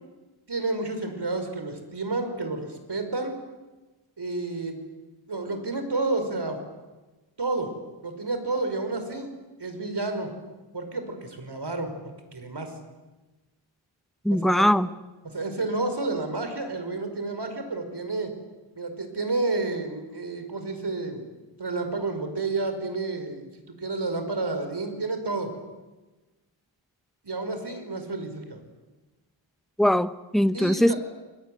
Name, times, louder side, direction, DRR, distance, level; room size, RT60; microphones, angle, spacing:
voice 1, 0.5-3.3 4.2-4.8 5.3-6.6 7.4-7.7 8.0-9.3 9.6-10.3 10.7-11.9 12.3-12.7 14.3-14.8 15.2-18.3 18.8-21.2 21.6-25.5 27.2-28.6 30.5-31.0, right 3 dB, 55° right, 7 dB, 5.4 m, -30 dB
voice 2, 14.2-14.9 29.8-30.9, equal, ahead, 12 dB, 1.0 m, -21 dB
29.0 x 21.5 x 9.3 m, 1.2 s
wide cardioid pair, 95°, 48 cm